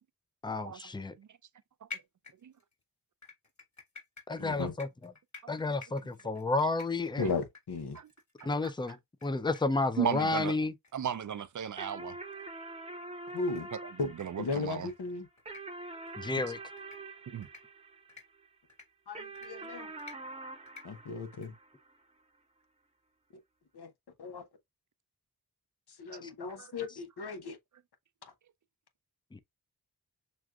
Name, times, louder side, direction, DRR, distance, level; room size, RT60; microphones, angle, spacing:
voice 1, 0.4-1.1 4.3-5.1 5.5-7.2 8.4-10.7 16.2-16.6 26.2-26.3 29.3-29.4, left 3 dB, 10° left, 0.5 m, -31 dB
sound 1, 1.9-2.7 3.2-9.3 9.5-9.6 9.9-10.0 10.4-10.5 10.8-10.9 11.4-11.5 11.8-11.9 12.4-12.5 13.5-13.6 14.0-14.2 14.7-14.9 15.4-15.6 16.1-16.3 16.8-17.0 17.4-17.6 18.1-18.2 18.7-18.8 19.3-19.5 20.0-20.2 20.7-20.8 21.3-21.5, left 5 dB, 45° left, 2.0 m, -49 dB
voice 2, 4.4-4.7 7.2-8.0 13.3-13.7 14.0-14.1 14.4-15.3 19.1-19.9 20.8-21.5 23.7-23.9 24.2-24.4 26.0-27.6, left 4 dB, 80° left, 0.9 m, -36 dB
voice 3, 10.0-10.5 10.9-12.2 13.7-14.9 17.3-17.5 26.5-26.7, right 8 dB, 50° right, 0.5 m, -35 dB
sound 2, 11.8-18.5 19.1-22.0, right 2 dB, 15° right, 0.7 m, -45 dB
6.1 x 2.5 x 2.4 m
wide cardioid pair, 60°, 38 cm